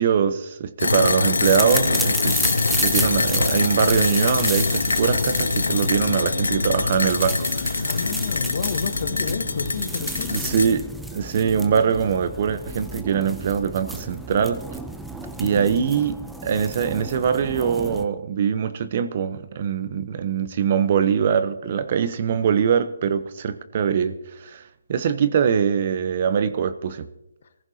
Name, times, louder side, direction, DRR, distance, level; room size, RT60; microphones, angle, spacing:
voice 1, 0.0-2.5 2.8-7.9 10.3-10.9 11.1-14.6 15.4-24.6 24.9-27.1, right 7 dB, 45° right, 12 dB, 0.9 m, -23 dB
sound 1, 0.8-10.7, left 3 dB, 85° left, 0.7 m, -24 dB
sound 2, 1.4-18.1, right 1 dB, ahead, 0.7 m, -33 dB
voice 2, 7.8-10.6 15.4-15.6, left 6 dB, 60° left, 9 dB, 1.3 m, -31 dB
23.5 x 15.0 x 2.9 m, 0.85 s
hypercardioid pair, 150°, 0 cm